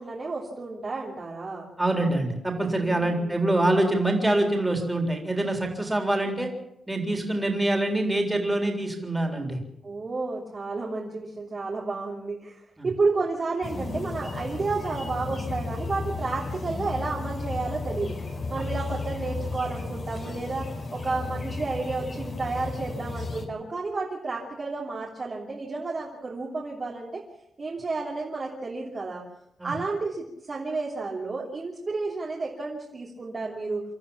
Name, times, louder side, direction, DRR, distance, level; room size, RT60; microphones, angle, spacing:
voice 1, 0.0-1.7 2.7-3.4 9.8-18.2 18.5-20.6 20.9-27.2 27.6-29.2 29.6-33.8, right 3 dB, 35° right, -3 dB, 3.1 m, -31 dB
voice 2, 1.8-6.5 6.9-9.6 12.8-12.9 18.5-18.7 29.6-29.7, right 1 dB, 10° right, 2 dB, 3.8 m, -25 dB
sound 1, 13.6-23.5, left 3 dB, 40° left, 3.5 m, -34 dB
26.5 x 13.5 x 7.3 m, 0.79 s
wide cardioid pair, 140°, 0 cm